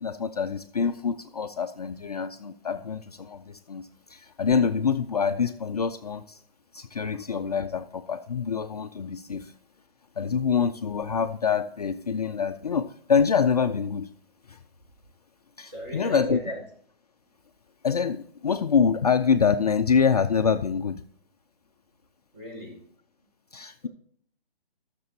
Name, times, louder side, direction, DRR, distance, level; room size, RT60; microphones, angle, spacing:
voice 1, 0.0-6.4 6.7-9.5 10.2-14.1 14.5-14.6 15.6-16.4 17.8-21.0 23.5-23.9, left 6 dB, 40° left, 7 dB, 0.5 m, -26 dB
voice 2, 15.6-16.6 22.3-22.9 23.8-23.9, equal, 30° right, -3 dB, 4.9 m, -37 dB
19.0 x 6.8 x 2.8 m, 0.62 s
hypercardioid pair, 165°, 30 cm